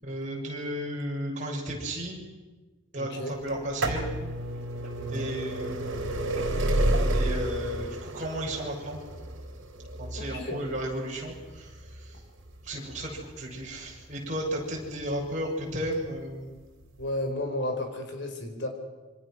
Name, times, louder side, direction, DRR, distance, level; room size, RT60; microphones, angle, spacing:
voice 1, 0.0-2.2 2.9-4.1 5.1-5.9 6.4-6.5 7.1-9.0 10.0-12.2 12.6-16.5, right 1 dB, 40° right, -2 dB, 6.9 m, -34 dB
voice 2, 2.9-3.4 4.9-5.3 10.2-10.6 17.0-18.7, left 1 dB, 60° left, 4 dB, 4.6 m, -33 dB
sound 1, 3.5-15.1 16.0-16.1 17.0-17.1 17.3-17.4, right 1 dB, 80° right, 3.7 m, -31 dB
26.5 x 25.0 x 6.3 m, 1.2 s
head